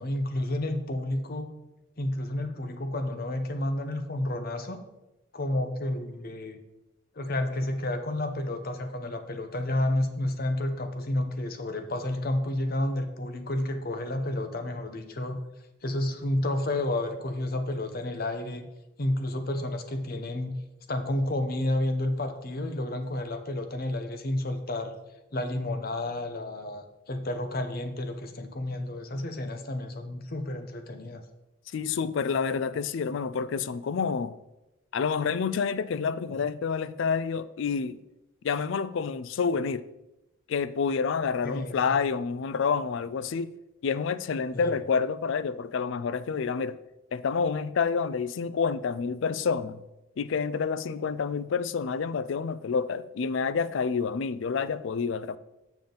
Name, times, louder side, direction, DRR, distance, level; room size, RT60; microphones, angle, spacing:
voice 1, 0.0-1.5 2.0-4.8 5.3-6.6 7.1-15.4 15.8-18.7 19.0-20.6 20.9-24.9 25.3-31.2 41.4-42.0 44.5-44.7, left 1 dB, 45° left, 0.7 m, -30 dB
voice 2, 31.7-34.4 34.9-38.0 38.4-39.8 40.5-43.5 43.8-46.8 47.1-49.8 50.2-55.4, left 5 dB, 60° left, 0.3 m, -28 dB
7.1 x 7.0 x 3.9 m
head